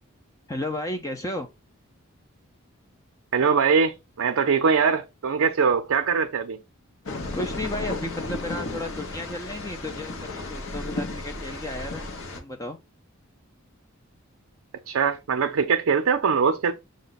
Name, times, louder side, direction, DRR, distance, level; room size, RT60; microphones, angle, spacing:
voice 1, 0.5-1.5 7.3-12.1 12.4-12.8, left 1 dB, 15° left, 0.3 m, -33 dB
voice 2, 3.3-6.6 14.9-16.7, right 6 dB, 70° right, 0.4 m, -22 dB
sound 1, 7.1-12.4, left 2 dB, 65° left, 0.9 m, -33 dB
6.2 x 2.1 x 3.9 m
head